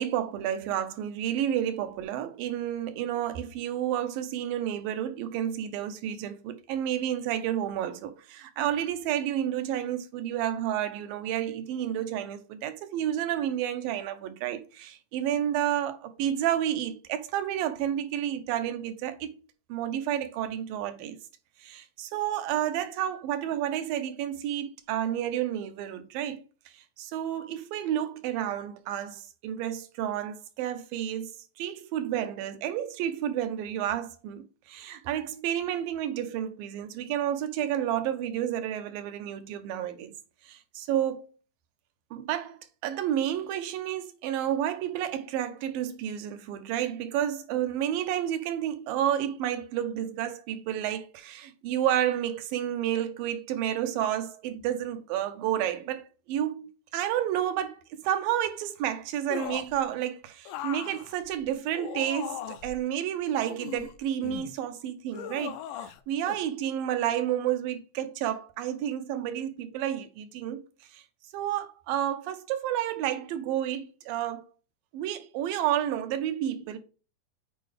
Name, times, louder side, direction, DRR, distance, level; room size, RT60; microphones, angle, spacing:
voice 1, 0.0-19.3 19.7-21.2 21.6-26.4 26.7-31.3 31.6-40.1 40.4-41.3 42.1-70.6 70.9-71.0 71.3-74.4 74.9-76.8, right 11 dB, 85° right, 2.6 m, -30 dB
sound 1, 59.3-59.8 60.5-62.8 63.4-64.5 65.1-66.0 66.3-66.4, left 10 dB, 80° left, 2.1 m, -38 dB
8.1 x 4.5 x 3.4 m
omnidirectional pair, 4.0 m